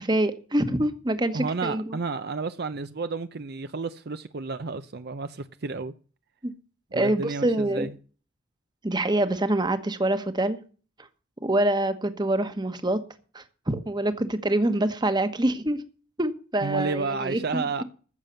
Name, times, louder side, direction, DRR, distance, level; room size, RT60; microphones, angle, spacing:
voice 1, 0.0-2.0 6.4-6.5 6.9-7.9 8.8-10.6 11.4-13.0 13.3-15.8 16.2-17.7, right 1 dB, 20° right, 1.2 m, -25 dB
voice 2, 1.3-5.9 6.9-7.9 16.6-17.8, right 4 dB, 55° right, 0.6 m, -31 dB
14.5 x 7.4 x 6.7 m
head